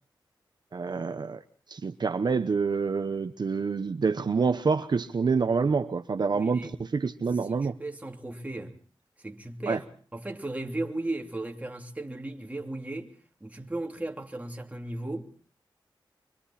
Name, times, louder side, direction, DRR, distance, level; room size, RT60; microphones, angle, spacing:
voice 1, 0.7-1.4 1.7-7.7 9.7-9.8, right 5 dB, 55° right, 1.1 m, -27 dB
voice 2, 6.3-6.7 7.4-8.7 9.2-9.9 10.1-13.1 13.4-15.3, right 2 dB, 15° right, 3.0 m, -36 dB
27.0 x 23.0 x 4.2 m
wide cardioid pair, 105°, 9 cm